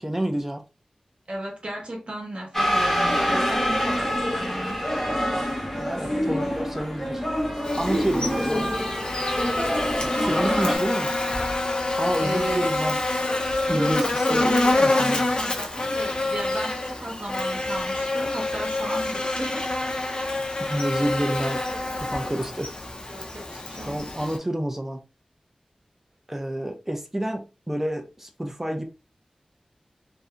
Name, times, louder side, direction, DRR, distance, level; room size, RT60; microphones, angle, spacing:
voice 1, 0.0-0.6 5.8-7.2 7.8-8.6 10.2-11.1 12.0-13.0 13.7-15.2 20.6-21.7 22.0-22.7 23.9-25.0 26.3-28.8, right 1 dB, 15° right, 0.5 m, -29 dB
voice 2, 1.3-4.8 6.0-6.6 8.2-8.5 10.1-10.9 12.2-12.7 13.7-19.7 20.1-20.4 23.1-24.1, right 1 dB, 55° right, 1.0 m, -34 dB
sound 1, 2.5-10.8, equal, 10° left, 0.9 m, -26 dB
Buzz, 7.6-24.4, left 2 dB, 45° left, 0.5 m, -27 dB
2.6 x 2.5 x 2.3 m
wide cardioid pair, 60°, 2 cm